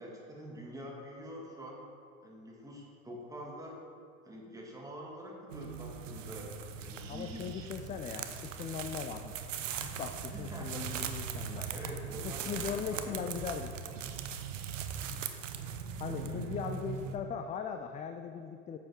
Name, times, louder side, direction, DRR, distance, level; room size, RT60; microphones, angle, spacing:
voice 1, 0.0-1.8 2.2-3.8 4.2-7.5 10.3-10.9 11.4-13.2 16.1-16.4, equal, 10° right, -3 dB, 2.3 m, -46 dB
sound 1, 5.5-17.2, right 7 dB, 80° right, 0.7 m, -40 dB
voice 2, 7.1-11.6 12.2-13.7 16.0-18.8, left 7 dB, 20° left, 6 dB, 0.4 m, -39 dB
9.4 x 7.5 x 3.7 m, 2.3 s
hypercardioid pair, 80°, 38 cm